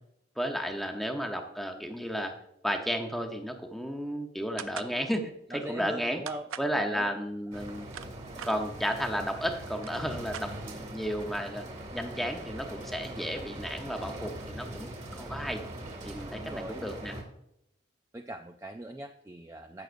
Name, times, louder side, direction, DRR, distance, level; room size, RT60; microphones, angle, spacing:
voice 1, 0.4-2.3 2.6-6.2 6.6-7.9 8.4-11.6 11.9-15.6 16.0-17.2, equal, ahead, 4 dB, 0.8 m, -33 dB
sound 1, 4.6-5.0 6.3-6.7 7.6-8.6 9.4-9.5 9.7-10.9, right 8 dB, 90° right, 0.5 m, -41 dB
voice 2, 5.5-6.4 6.8-7.2 16.3-16.8 18.1-19.8, right 1 dB, 15° right, 5 dB, 0.3 m, -40 dB
sound 2, 7.5-17.2, right 1 dB, 35° right, 2.1 m, -41 dB
15.5 x 6.4 x 2.6 m, 0.78 s
head